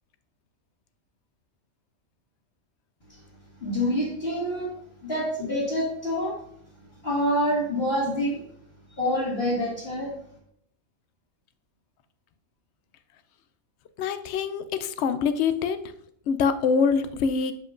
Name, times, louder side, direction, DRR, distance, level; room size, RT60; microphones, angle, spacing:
voice 1, 3.6-4.7 5.0-6.3 7.0-8.4 9.0-10.1, equal, 50° left, -10 dB, 2.4 m, -26 dB
voice 2, 14.0-15.8 16.3-17.5, left 6 dB, 65° left, 11 dB, 0.8 m, -24 dB
7.9 x 7.2 x 2.6 m, 0.69 s
omnidirectional pair, 1.4 m